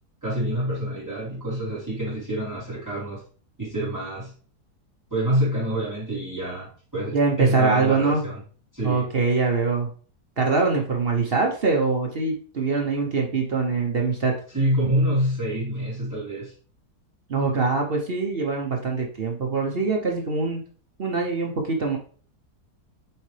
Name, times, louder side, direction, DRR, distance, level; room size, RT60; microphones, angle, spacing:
voice 1, 0.2-3.2 3.6-4.3 5.1-8.4 8.7-9.1 14.5-16.5, right 1 dB, 10° right, -8 dB, 2.5 m, -27 dB
voice 2, 7.1-8.2 8.8-9.9 10.4-14.4 17.3-20.6 21.0-22.0, right 4 dB, 45° right, 1 dB, 0.8 m, -23 dB
7.4 x 3.9 x 3.2 m, 0.43 s
omnidirectional pair, 1.8 m